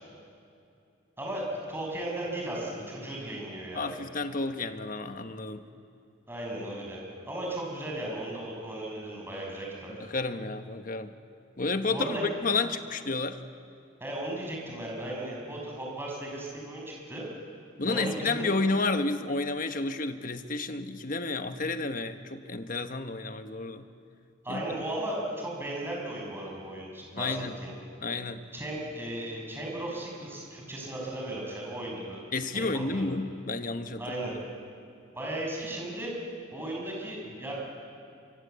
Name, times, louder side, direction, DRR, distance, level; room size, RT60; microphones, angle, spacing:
voice 1, 1.2-3.9 6.3-7.0 7.3-9.9 11.9-12.3 14.0-17.2 17.8-18.5 24.4-27.7 28.5-32.2 32.5-33.1 34.0-34.3 35.1-36.1 36.5-37.5, right 1 dB, 10° right, -2 dB, 6.6 m, -36 dB
voice 2, 3.7-5.6 10.1-11.1 11.6-13.4 17.8-23.8 24.5-24.6 27.1-27.5 28.0-28.4 32.3-34.0, left 3 dB, 45° left, 8 dB, 1.2 m, -31 dB
25.0 x 24.0 x 8.2 m, 2.5 s
head